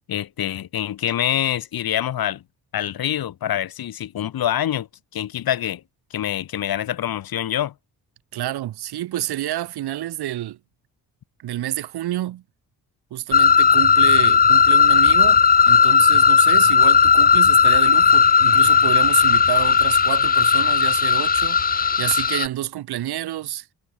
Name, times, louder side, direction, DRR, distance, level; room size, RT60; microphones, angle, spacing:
voice 1, 0.1-2.4 2.7-4.9 5.1-5.8 6.1-7.7, left 11 dB, 70° left, 1.7 m, -25 dB
voice 2, 8.3-10.6 11.4-12.4 13.1-23.7, right 13 dB, 85° right, 1.6 m, -28 dB
sound 1, 13.3-22.5, left 6 dB, 25° left, 0.5 m, -15 dB
cardioid pair, 95°, 38 cm